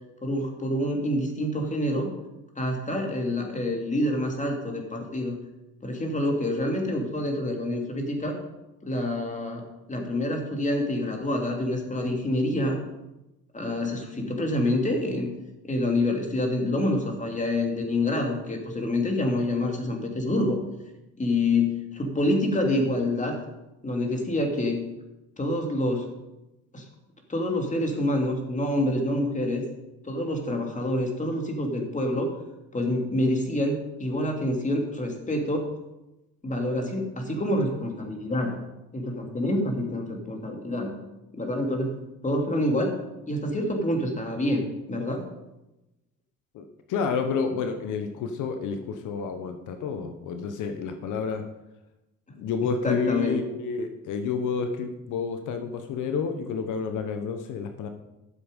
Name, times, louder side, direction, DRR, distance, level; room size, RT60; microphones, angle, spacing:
voice 1, 0.2-2.1 2.6-5.4 5.8-8.4 8.8-12.8 13.5-15.3 15.6-20.6 21.2-23.4 23.8-24.8 25.4-26.1 26.7-26.8 27.3-29.7 30.0-32.3 32.7-35.7 36.4-38.6 38.9-41.0 41.3-42.0 42.2-42.9 43.3-45.3 52.8-53.4, left 1 dB, 25° left, 2 dB, 2.7 m, -27 dB
voice 2, 46.5-51.4 52.3-57.9, left 5 dB, 85° left, 7 dB, 1.0 m, -30 dB
12.5 x 7.2 x 5.2 m, 0.96 s
cardioid pair, 90°, 30 cm